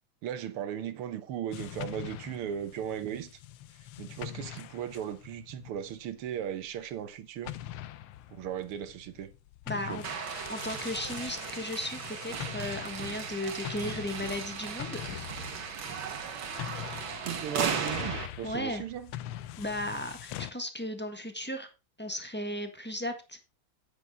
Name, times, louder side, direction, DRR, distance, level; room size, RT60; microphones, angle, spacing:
voice 1, 0.2-3.3 4.0-7.6 8.3-9.3 9.7-10.0 17.2-19.1, right 9 dB, 90° right, 1.9 m, -37 dB
sound 1, 1.5-7.1 7.4-20.5, left 13 dB, 80° left, 1.5 m, -43 dB
voice 2, 9.7-10.0 10.5-15.3 18.4-18.8 19.6-21.7 22.0-23.4, left 1 dB, 5° left, 1.0 m, -36 dB
sound 2, 10.0-18.3, right 6 dB, 65° right, 2.1 m, -36 dB
9.6 x 8.4 x 3.6 m
omnidirectional pair, 2.4 m